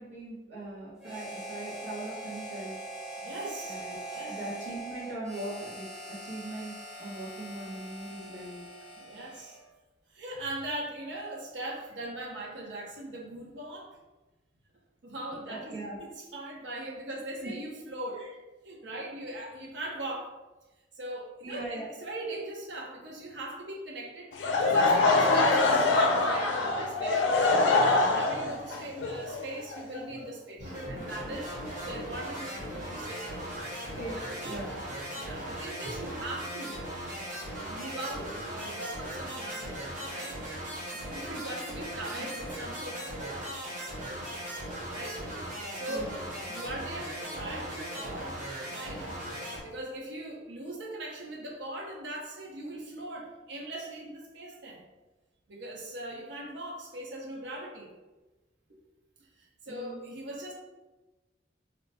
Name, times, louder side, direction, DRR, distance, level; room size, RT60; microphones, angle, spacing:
voice 1, 0.0-2.8 3.7-4.0 4.3-8.7 15.5-16.0 17.4-17.5 21.4-21.9 34.0-34.2 34.4-34.8 42.2-42.3 45.9-46.2 59.7-60.0, right 2 dB, 85° right, -5 dB, 1.3 m, -40 dB
Harmonica, 1.0-9.6, right 1 dB, 5° right, 0.6 m, -42 dB
voice 2, 3.2-3.8 4.1-4.4 9.0-9.6 10.1-14.0 15.0-18.3 18.6-20.4 20.9-24.3 24.6-27.7 28.1-31.5 31.8-33.7 34.1-34.3 35.1-36.8 37.6-40.4 40.9-43.5 44.9-45.2 45.7-46.1 46.5-48.4 48.7-49.0 49.6-54.8 55.5-57.9 59.4-60.5, right 1 dB, 70° right, -2 dB, 0.6 m, -40 dB
Laughter / Crowd, 24.3-30.3, left 3 dB, 85° left, 0.5 m, -24 dB
sound 1, 30.6-49.6, equal, 45° right, 1.0 m, -38 dB
2.9 x 2.2 x 4.0 m, 1.1 s
head